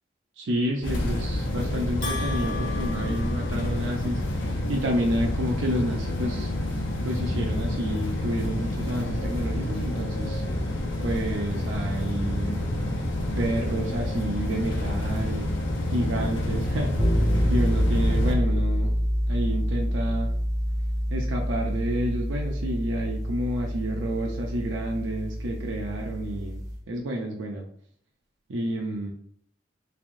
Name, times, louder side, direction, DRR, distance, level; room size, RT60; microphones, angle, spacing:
voice 1, 0.4-6.5 7.0-10.4 11.0-12.6 13.4-15.6 15.9-17.2 17.5-18.9 19.3-20.3 21.1-27.7 28.5-29.1, right 1 dB, 90° right, 0 dB, 0.5 m, -30 dB
sound 1, 0.8-18.3, left 1 dB, 85° left, 0.7 m, -28 dB
Bell, 2.0-4.2, left 4 dB, 45° left, 1.3 m, -37 dB
sound 2, 17.0-26.8, equal, 20° right, 0.8 m, -27 dB
3.6 x 3.3 x 2.5 m, 0.62 s
head